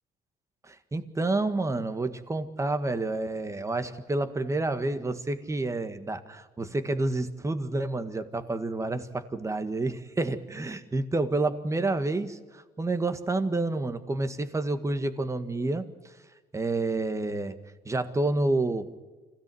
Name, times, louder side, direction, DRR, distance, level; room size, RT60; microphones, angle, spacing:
voice 1, 0.7-15.9 16.5-17.6 17.9-18.9, right 2 dB, 15° right, 10 dB, 1.8 m, -29 dB
25.5 x 17.0 x 7.9 m, 1.3 s
cardioid pair, 110°, 17 cm